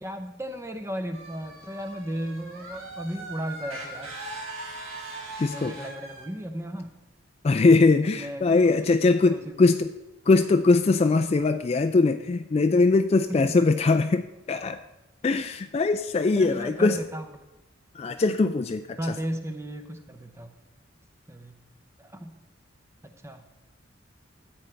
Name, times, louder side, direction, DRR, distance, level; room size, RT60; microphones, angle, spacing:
voice 1, 0.0-4.2 5.4-7.0 8.1-8.9 9.2-9.5 13.3-13.7 16.3-17.3 19.0-20.6 21.3-21.6 22.0-22.4 23.0-23.5, equal, 15° right, 7 dB, 0.7 m, -35 dB
sound 1, 1.1-6.3, right 2 dB, 80° right, 2.7 m, -40 dB
voice 2, 5.4-5.7 7.4-9.9 10.3-14.8 15.2-17.0 18.0-19.0, left 3 dB, 30° left, 8 dB, 0.3 m, -21 dB
13.0 x 8.7 x 3.4 m, 1.0 s
head